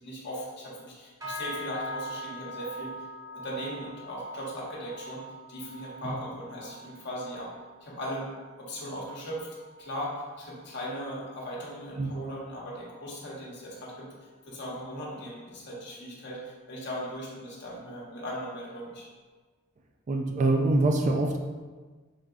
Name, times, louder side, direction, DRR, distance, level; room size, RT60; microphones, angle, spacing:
voice 1, 0.0-2.9 3.3-5.2 5.5-7.5 7.8-8.3 8.6-9.5 9.8-19.1, equal, 55° left, -5 dB, 0.9 m, -38 dB
sound 1, 1.2-10.8 11.1-11.5 11.9-12.2 12.8-12.9, equal, 15° right, 0.8 m, -43 dB
voice 2, 20.1-21.4, right 2 dB, 35° right, 3 dB, 0.3 m, -24 dB
3.7 x 3.5 x 2.4 m, 1.4 s
head